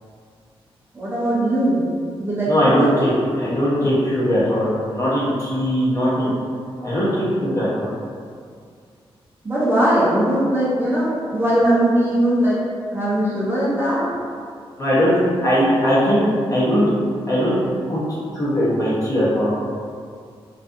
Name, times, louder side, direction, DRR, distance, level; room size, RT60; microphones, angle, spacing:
voice 1, 0.9-1.8 2.2-3.1 9.4-12.6 12.9-14.1, right 1 dB, 20° right, -8 dB, 0.5 m, -20 dB
voice 2, 2.5-3.1 3.4-4.7 5.0-6.3 6.8-7.7 14.8-15.1 15.4-16.9 17.3-17.6 17.9-18.0 18.3-19.5, equal, 35° left, -9 dB, 0.8 m, -19 dB
2.5 x 2.4 x 2.4 m, 2.2 s
wide cardioid pair, 160°, 10 cm